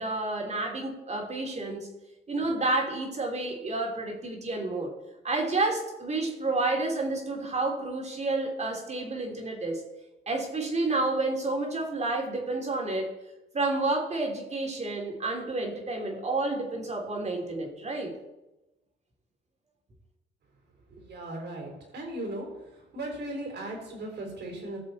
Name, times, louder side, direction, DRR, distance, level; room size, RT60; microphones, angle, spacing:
voice 1, 0.0-1.9 2.3-4.9 5.2-9.8 10.3-13.1 13.5-18.1, right 2 dB, 35° right, 1 dB, 3.2 m, -30 dB
voice 2, 20.9-24.8, right 1 dB, 60° right, 1 dB, 4.0 m, -37 dB
17.0 x 6.6 x 4.2 m, 0.99 s
cardioid pair, 90°, 20 cm